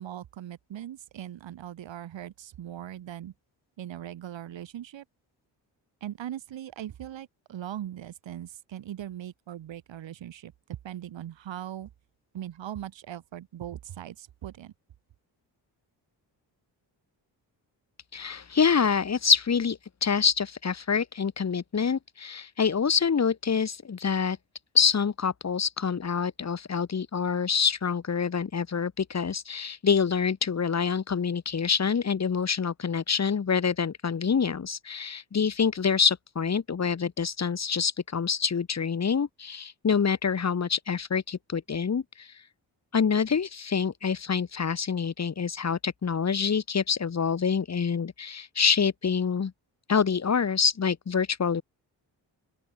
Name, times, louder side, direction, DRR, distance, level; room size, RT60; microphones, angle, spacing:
voice 1, 0.0-3.3 3.8-5.0 6.0-10.5 10.8-11.9 12.3-14.7, right 11 dB, 85° right, 5.9 m, -40 dB
voice 2, 18.1-24.4 24.7-42.3 42.9-49.5 49.9-51.6, left 6 dB, 35° left, 1.5 m, -26 dB
open air
cardioid pair, 75°, 44 cm